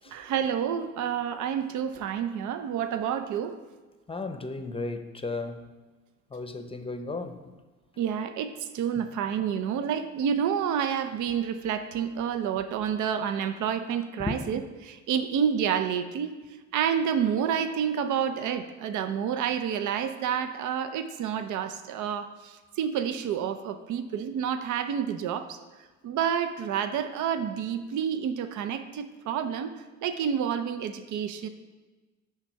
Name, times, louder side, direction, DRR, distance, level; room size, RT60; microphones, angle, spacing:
voice 1, 0.1-3.6 8.0-16.4 16.7-25.6 26.0-31.5, right 8 dB, 75° right, 9 dB, 0.6 m, -29 dB
voice 2, 4.1-5.7 6.3-7.5 14.2-14.5, left 3 dB, 20° left, 7 dB, 0.6 m, -35 dB
8.7 x 3.5 x 5.6 m, 1.3 s
cardioid pair, 95°, 30 cm